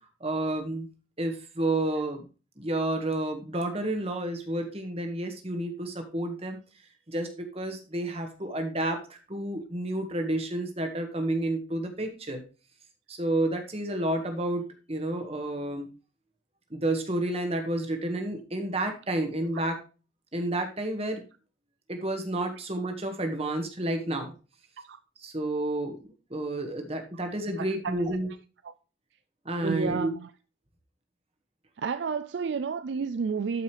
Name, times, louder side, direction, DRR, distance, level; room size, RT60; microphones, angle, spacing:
voice 1, 0.2-0.9 1.2-2.2 2.6-6.6 7.1-12.4 13.1-15.9 16.7-19.8 20.3-21.2 21.9-24.3 25.2-28.3 29.4-30.1, right 1 dB, 30° right, 1.6 m, -30 dB
voice 2, 27.6-28.0 28.6-28.7 29.6-30.3 31.8-33.6, right 5 dB, 60° right, 0.4 m, -31 dB
12.0 x 5.4 x 3.3 m
head